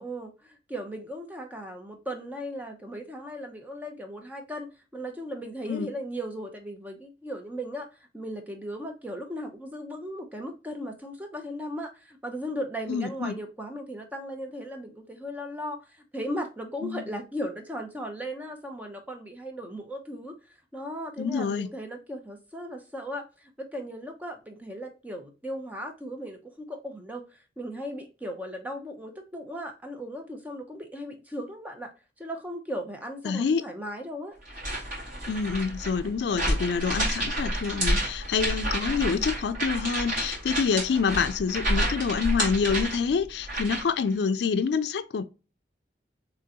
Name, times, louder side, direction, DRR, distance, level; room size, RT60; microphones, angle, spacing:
voice 1, 0.0-27.3 27.6-31.9 32.2-34.4, equal, 10° right, 0.6 m, -37 dB
voice 2, 12.9-13.4 16.8-17.0 21.2-21.7 33.2-33.6 35.3-45.2, left 5 dB, 75° left, 0.4 m, -27 dB
sound 1, 34.5-44.0, right 1 dB, 45° right, 2.0 m, -29 dB
3.7 x 3.3 x 2.8 m
head